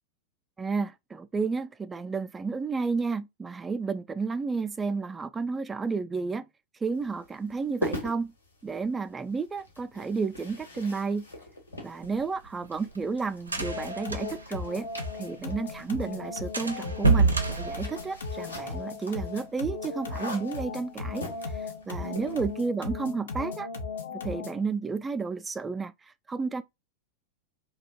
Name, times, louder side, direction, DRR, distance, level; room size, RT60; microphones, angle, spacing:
voice 1, 0.6-6.4 6.8-8.3 8.6-11.3 11.8-14.9 15.2-23.7 24.1-25.9 26.3-26.6, right 4 dB, 15° right, 0.3 m, -32 dB
sound 1, 6.9-22.5, left 1 dB, 80° left, 1.2 m, -43 dB
sound 2, 12.0-15.4 15.7-15.8 16.1-16.2 16.5-18.6, right 3 dB, 80° right, 0.5 m, -28 dB
sound 3, 13.6-24.7, left 4 dB, 65° left, 0.6 m, -37 dB
2.5 x 2.2 x 3.5 m
figure-of-eight pair, 90°, 0 cm